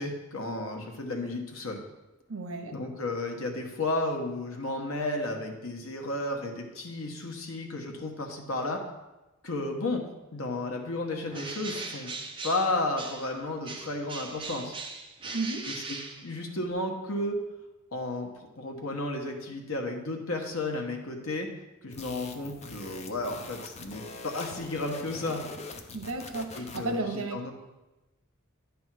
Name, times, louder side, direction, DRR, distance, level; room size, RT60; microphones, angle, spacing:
voice 1, 0.0-1.8 2.7-8.8 9.4-10.0 10.3-12.1 12.4-14.7 15.7-17.4 17.9-21.5 21.8-25.4 26.5-27.5, left 2 dB, 75° left, 3 dB, 1.2 m, -33 dB
voice 2, 2.3-2.7 15.3-15.6 25.9-27.4, right 2 dB, 70° right, 4 dB, 1.1 m, -33 dB
Bird, 11.3-13.4 13.6-16.7, right 3 dB, 25° right, 0.8 m, -40 dB
sound 1, 21.9-27.0, left 3 dB, 30° left, 0.6 m, -43 dB
10.0 x 3.5 x 6.1 m, 1.0 s
head